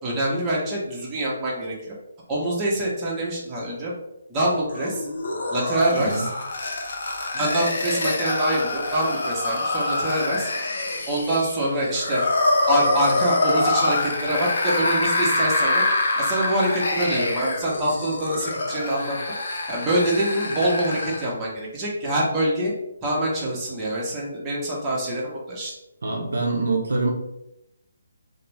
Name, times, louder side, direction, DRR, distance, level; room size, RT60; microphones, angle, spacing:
voice 1, 0.0-1.9 2.3-3.9 4.3-5.1 5.5-6.3 7.3-10.5 11.1-12.2 12.7-15.8 16.2-19.2 19.7-22.7 23.0-25.7, right 1 dB, 20° right, -5 dB, 0.7 m, -25 dB
sound 1, 4.7-21.3, left 2 dB, 55° left, 0.5 m, -25 dB
voice 2, 26.0-27.1, right 3 dB, 65° right, 0 dB, 0.6 m, -24 dB
2.5 x 2.0 x 3.1 m, 0.88 s
figure-of-eight pair, 145°, 0 cm